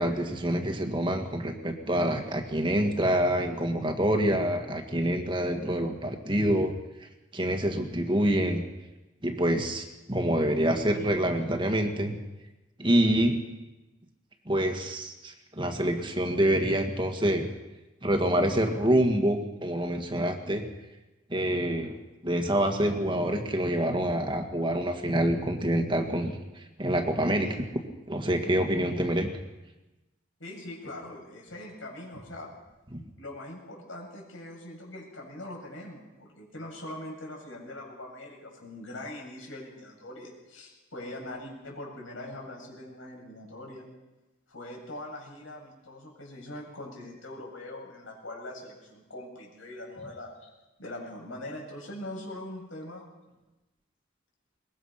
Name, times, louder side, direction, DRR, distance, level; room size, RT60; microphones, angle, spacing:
voice 1, 0.0-6.7 7.0-8.6 9.2-12.2 12.8-13.4 14.5-17.5 18.0-20.6 21.3-26.3 26.8-27.7 28.1-29.3 32.9-33.0, right 1 dB, 25° right, 4 dB, 1.9 m, -26 dB
voice 2, 30.4-32.5 33.2-43.9 44.5-50.5 50.8-53.1, left 1 dB, 85° left, -1 dB, 7.5 m, -42 dB
22.5 x 21.0 x 5.8 m, 1.1 s
head